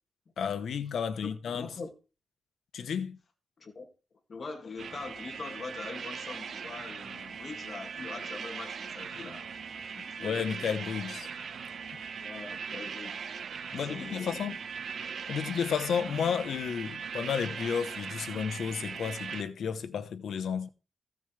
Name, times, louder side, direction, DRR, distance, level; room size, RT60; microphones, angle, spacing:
voice 1, 0.4-1.7 2.7-3.2 10.2-11.3 13.7-14.6 15.3-20.7, left 7 dB, 80° left, 1.0 m, -32 dB
voice 2, 1.2-1.9 3.6-3.9 4.3-9.5 9.9-10.4 12.2-13.2 13.8-14.5, left 4 dB, 50° left, 2.2 m, -43 dB
sound 1, 4.8-19.4, right 6 dB, 75° right, 1.0 m, -40 dB
15.5 x 7.1 x 3.3 m
cardioid pair, 80°, 0 cm